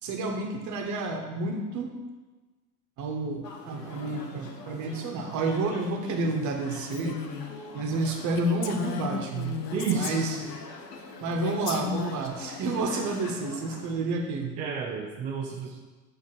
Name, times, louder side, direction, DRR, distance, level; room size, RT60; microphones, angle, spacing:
voice 1, 0.0-1.9 3.0-7.2 7.7-10.5 11.2-14.6, right 3 dB, 40° right, 3 dB, 1.1 m, -30 dB
sound 1, 3.4-13.9, left 3 dB, 80° left, 1.1 m, -44 dB
Female speech woman speaking, 6.9-7.5 7.9-8.0 8.3-10.6 11.4-12.3, left 8 dB, 35° left, 0.7 m, -34 dB
voice 2, 9.7-10.4 14.6-15.8, right 6 dB, 20° right, 0 dB, 0.3 m, -31 dB
7.4 x 3.0 x 6.0 m, 1.2 s
hypercardioid pair, 90°, 48 cm